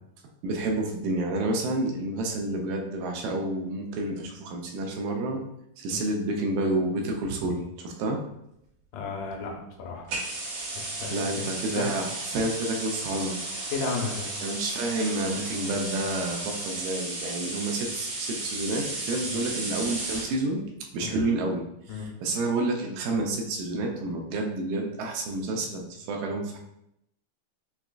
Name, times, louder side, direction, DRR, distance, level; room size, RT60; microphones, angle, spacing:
voice 1, 0.4-5.4 5.8-8.2 11.1-13.4 14.4-20.6 20.9-21.6 21.9-26.6, right 2 dB, 80° right, 1 dB, 2.2 m, -29 dB
voice 2, 8.9-10.1 10.8-11.3 11.8-11.9 13.7-14.3 19.3-19.4 21.0-21.1 21.9-22.1, left 4 dB, 85° left, 1 dB, 2.4 m, -33 dB
sound 1, 10.1-20.4, right 2 dB, 65° right, 2.3 m, -34 dB
5.8 x 2.2 x 2.4 m, 0.80 s
omnidirectional pair, 4.0 m